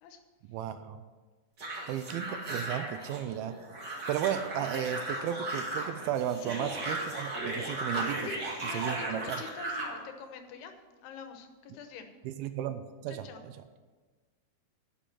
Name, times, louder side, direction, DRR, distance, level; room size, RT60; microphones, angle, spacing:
voice 1, 0.5-1.0 1.9-3.6 4.1-8.3 8.7-9.4 12.2-13.6, right 10 dB, 80° right, 10 dB, 2.3 m, -34 dB
sound 1, 1.6-10.0, right 2 dB, 35° right, 2.1 m, -36 dB
voice 2, 8.2-10.7 11.0-12.1 13.1-13.4, left 6 dB, 85° left, 7 dB, 3.0 m, -45 dB
10.5 x 7.0 x 7.5 m, 1.4 s
omnidirectional pair, 4.6 m